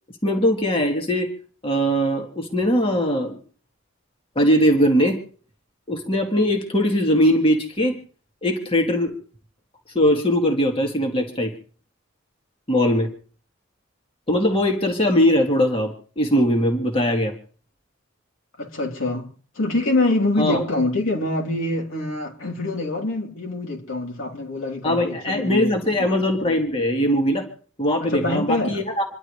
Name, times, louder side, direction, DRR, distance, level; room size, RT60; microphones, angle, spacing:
voice 1, 0.2-1.3 1.6-3.4 4.4-5.2 5.9-7.9 8.4-9.1 9.9-11.5 12.7-13.1 14.3-17.3 20.4-20.6 24.8-27.4 27.8-29.1, equal, 25° left, 2.3 m, -20 dB
voice 2, 18.6-19.3 19.6-26.1 28.0-28.8, left 2 dB, 70° left, 3.5 m, -25 dB
27.5 x 11.5 x 3.3 m
head